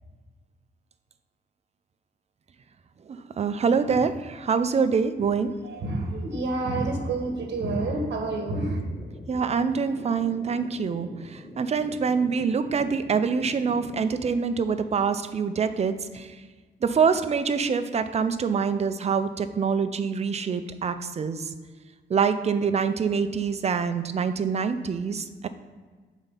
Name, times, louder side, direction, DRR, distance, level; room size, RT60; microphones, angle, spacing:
voice 1, 3.1-5.5 9.3-16.3 16.8-21.5 22.1-25.5, right 5 dB, 35° right, 10 dB, 0.4 m, -25 dB
voice 2, 5.6-8.8, right 2 dB, 60° right, 3 dB, 1.2 m, -28 dB
sound 1, 6.9-14.3, left 1 dB, 15° left, 0.7 m, -44 dB
5.7 x 4.1 x 5.2 m, 1.4 s
cardioid pair, 125°, 20 cm